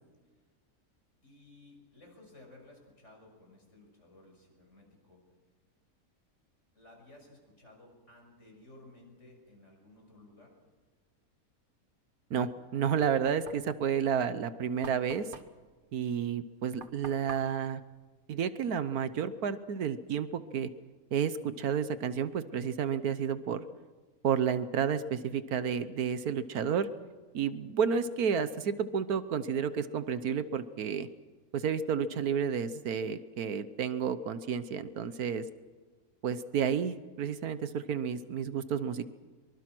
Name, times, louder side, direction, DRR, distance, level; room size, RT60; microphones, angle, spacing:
voice 1, 1.2-5.2 6.7-10.5 35.0-35.2, left 2 dB, 50° left, 1 dB, 6.8 m, -56 dB
voice 2, 12.3-15.3 15.9-17.8 18.3-20.7 21.1-23.6 24.2-26.9 27.3-31.1 31.5-35.4 36.2-39.0, right 7 dB, 80° right, 12 dB, 1.5 m, -31 dB
Knock, 12.5-18.9, right 4 dB, 35° right, 1.4 m, -50 dB
24.5 x 23.5 x 6.1 m, 1.4 s
omnidirectional pair, 1.6 m